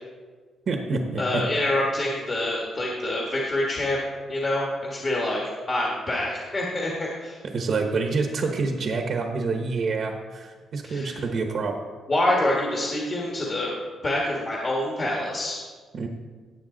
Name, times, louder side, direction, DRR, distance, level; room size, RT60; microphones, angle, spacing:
voice 1, 0.7-1.4 7.5-11.7 15.9-16.1, right 4 dB, 45° right, 3 dB, 1.0 m, -27 dB
voice 2, 1.2-4.0 4.3-7.4 10.8-11.2 12.1-13.7 14.0-15.6, left 1 dB, 30° left, -3 dB, 1.6 m, -26 dB
17.0 x 8.3 x 3.9 m, 1.5 s
cardioid pair, 170°, 0 cm